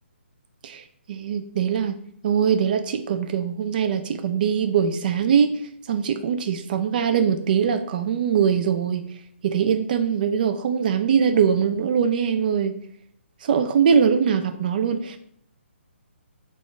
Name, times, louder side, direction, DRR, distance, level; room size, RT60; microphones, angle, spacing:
voice 1, 1.1-2.0 2.2-5.5 5.9-9.1 9.4-12.7 13.4-15.2, right 7 dB, 45° right, 8 dB, 0.3 m, -22 dB
3.0 x 2.4 x 3.8 m, 0.68 s
hypercardioid pair, 145°, 7 cm